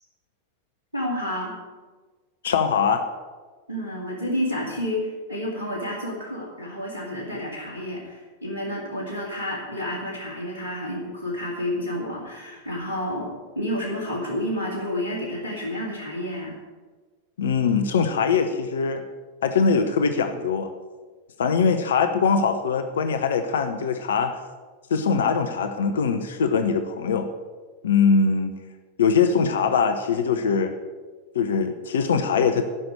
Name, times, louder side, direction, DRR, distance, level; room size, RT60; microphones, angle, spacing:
voice 1, 0.9-1.5 3.7-16.6, left 1 dB, 80° right, -4 dB, 2.6 m, -30 dB
voice 2, 2.4-3.0 17.4-19.1 19.4-20.7 21.4-24.4 24.9-27.3 27.8-28.6 29.0-30.7 31.3-32.6, left 5 dB, 65° left, 8 dB, 0.8 m, -22 dB
12.0 x 6.0 x 9.4 m, 1.4 s
figure-of-eight pair, 90°, 0 cm